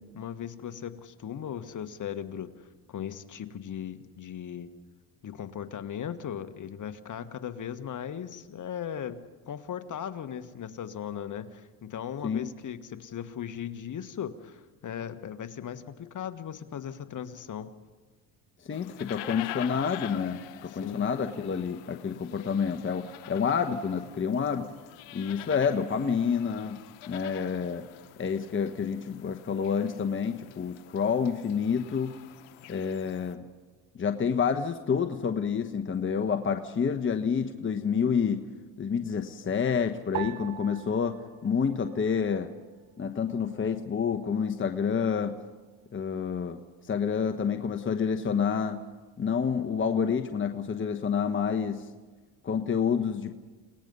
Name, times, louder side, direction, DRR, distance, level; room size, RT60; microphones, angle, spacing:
voice 1, 0.1-4.7 5.2-17.7 20.7-21.1, left 9 dB, 40° left, 9 dB, 1.5 m, -38 dB
sound 1, 18.7-33.3, left 15 dB, 80° left, 1.1 m, -46 dB
voice 2, 18.7-24.7 25.1-26.8 27.1-27.8 28.2-32.1 32.7-33.4 34.0-38.4 38.8-41.2 41.4-42.5 43.0-45.3 45.9-46.6 46.9-48.8 49.2-51.8 52.4-53.3, left 6 dB, 25° left, 6 dB, 1.2 m, -28 dB
sound 2, 40.1-42.7 42.9-43.8 44.5-44.9, right 16 dB, 75° right, 1.1 m, -42 dB
30.0 x 18.5 x 5.5 m, 1.3 s
supercardioid pair, 90°, 45 cm